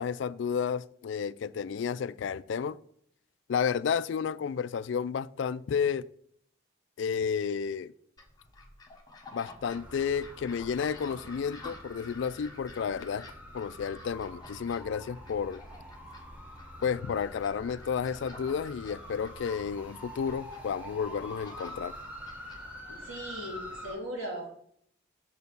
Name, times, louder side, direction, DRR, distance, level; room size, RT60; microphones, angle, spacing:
voice 1, 0.0-2.8 3.5-6.1 7.0-7.9 9.3-13.3 13.5-15.6 16.8-21.9, left 6 dB, 65° left, 0.3 m, -31 dB
sound 1, 8.2-23.4, left 2 dB, 20° left, 1.1 m, -51 dB
sound 2, 9.7-23.9, equal, 5° right, 1.2 m, -46 dB
voice 2, 22.9-24.5, right 1 dB, 85° right, 3.1 m, -38 dB
6.9 x 4.4 x 6.8 m
head